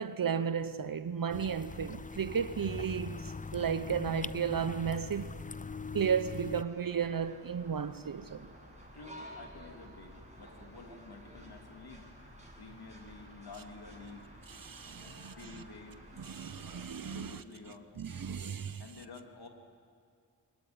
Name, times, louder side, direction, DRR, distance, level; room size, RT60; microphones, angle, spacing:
voice 1, 0.0-5.4 5.9-8.5 14.5-15.3 16.2-17.4 18.0-18.8, right 7 dB, 60° right, 0.8 m, -34 dB
sound 1, 1.3-6.6, left 4 dB, 20° left, 0.5 m, -42 dB
sound 2, 5.2-16.8, equal, 15° right, 7.3 m, -53 dB
voice 2, 8.9-12.1 12.6-14.3 15.1-16.0 17.1-17.9 18.8-19.5, left 3 dB, 75° left, 2.9 m, -50 dB
22.5 x 20.5 x 9.5 m
cardioid pair, 40°, 38 cm